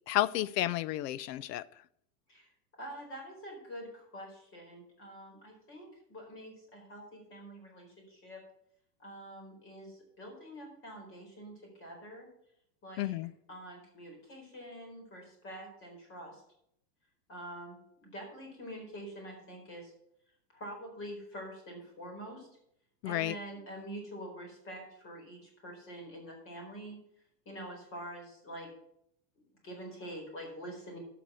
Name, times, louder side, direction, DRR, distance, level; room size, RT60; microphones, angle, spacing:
voice 1, 0.1-1.6 13.0-13.3 23.0-23.4, left 15 dB, 85° left, 0.7 m, -31 dB
voice 2, 2.8-8.4 9.0-12.3 12.8-13.2 13.5-16.4 17.3-19.9 20.5-22.5 23.0-27.0 27.4-28.7 29.4-31.0, right 1 dB, 25° left, 4.4 m, -46 dB
12.0 x 6.1 x 6.3 m
supercardioid pair, 155°, 47 cm